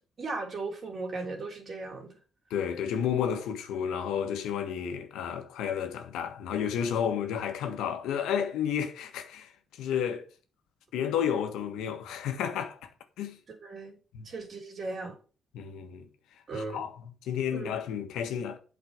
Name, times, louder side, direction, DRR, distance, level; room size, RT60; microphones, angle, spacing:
voice 1, 0.2-2.1 13.5-14.0 14.2-15.2 16.5-16.8 17.5-17.7, right 3 dB, 50° right, 3.2 m, -37 dB
voice 2, 2.5-10.3 10.9-12.9 13.2-13.4 14.1-14.3 15.5-16.1 16.5-16.9 17.2-18.6, left 8 dB, 90° left, 1.4 m, -31 dB
8.4 x 5.0 x 5.1 m
cardioid pair, 90°, 0 cm